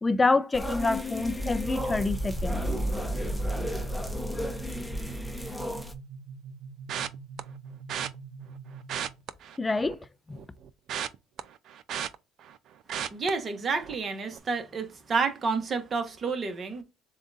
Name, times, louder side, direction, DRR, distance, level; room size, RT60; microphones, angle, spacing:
voice 1, 0.0-2.6 9.6-10.0 10.3-10.4, left 3 dB, 20° left, 0.4 m, -26 dB
sound 1, 0.5-5.9, equal, ahead, 0.9 m, -32 dB
sound 2, 1.6-9.2, right 5 dB, 80° right, 0.9 m, -44 dB
sound 3, 6.9-7.4 7.9-8.1 8.8-10.0 10.4-12.6 12.9-13.3 13.8-14.0 14.3-14.4, right 9 dB, 60° right, 0.4 m, -34 dB
voice 2, 13.1-16.8, right 4 dB, 35° right, 1.2 m, -30 dB
7.0 x 2.5 x 2.6 m
supercardioid pair, 85°, 0 cm